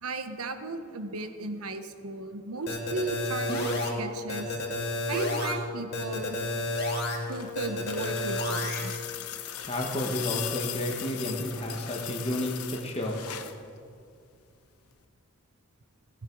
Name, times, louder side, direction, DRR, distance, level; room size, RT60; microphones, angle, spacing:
voice 1, 0.0-4.6 5.1-6.4 7.3-8.9, right 3 dB, 85° right, 8 dB, 1.0 m, -35 dB
sound 1, 2.7-3.9 4.3-5.5 5.9-7.2 7.5-8.8, left 2 dB, 50° left, 2.1 m, -30 dB
sound 2, 7.0-13.6 14.9-15.0, left 11 dB, 90° left, 0.9 m, -38 dB
voice 2, 9.6-13.2, left 1 dB, 25° left, 0 dB, 1.4 m, -31 dB
18.0 x 10.5 x 4.7 m, 2.3 s
head